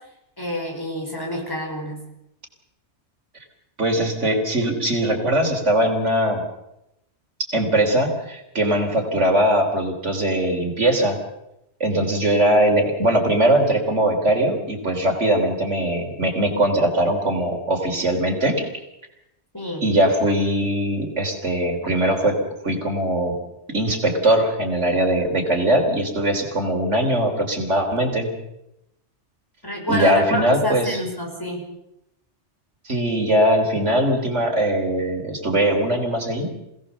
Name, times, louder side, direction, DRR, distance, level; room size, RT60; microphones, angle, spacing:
voice 1, 0.4-2.0 5.7-5.9 19.5-19.8 22.7-22.8 29.6-31.6, equal, 20° left, 0 dB, 5.7 m, -28 dB
voice 2, 3.8-6.4 7.5-11.2 11.8-18.7 19.8-22.4 22.6-23.4 23.7-28.3 29.9-31.0 32.9-36.5, right 1 dB, 85° right, 3 dB, 4.0 m, -21 dB
27.0 x 17.5 x 7.0 m, 0.86 s
omnidirectional pair, 1.2 m